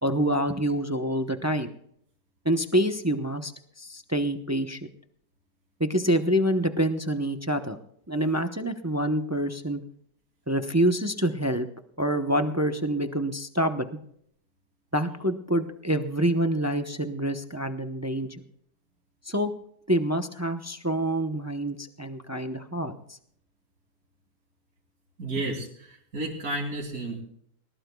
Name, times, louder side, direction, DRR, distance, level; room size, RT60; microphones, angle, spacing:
voice 1, 0.0-1.7 2.4-3.5 3.8-4.9 5.8-7.8 8.1-9.8 10.5-11.7 12.0-13.9 14.9-18.4 19.2-19.5 19.9-23.2, right 1 dB, 20° right, 7 dB, 0.5 m, -26 dB
voice 2, 25.2-27.2, right 2 dB, 55° right, -2 dB, 3.2 m, -32 dB
20.0 x 18.5 x 2.3 m, 0.66 s
omnidirectional pair, 1.8 m